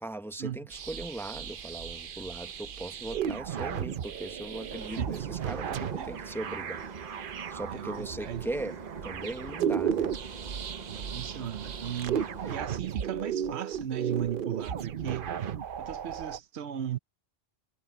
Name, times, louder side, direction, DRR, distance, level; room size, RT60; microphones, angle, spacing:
voice 1, 0.0-6.9 7.5-10.2, right 2 dB, 5° left, 0.7 m, -39 dB
sound 1, 0.7-16.4, right 8 dB, 60° right, 0.9 m, -35 dB
sound 2, 4.7-12.6, right 5 dB, 40° right, 1.2 m, -44 dB
voice 2, 5.0-5.3 6.0-6.1 7.7-8.5 10.9-15.3 15.8-17.0, right 10 dB, 85° right, 1.0 m, -36 dB
omnidirectional pair, 1.1 m